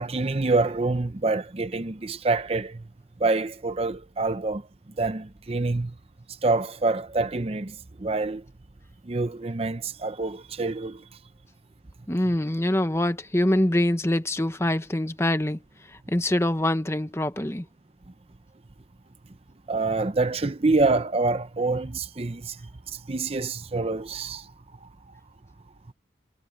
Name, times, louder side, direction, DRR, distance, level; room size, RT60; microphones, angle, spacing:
voice 1, 0.0-2.8 3.2-4.6 5.0-5.9 6.4-8.4 9.1-11.0 19.7-22.6 22.9-24.5, right 3 dB, 35° right, 0.6 m, -26 dB
voice 2, 12.1-15.6 15.9-17.7, left 1 dB, 15° left, 1.1 m, -24 dB
head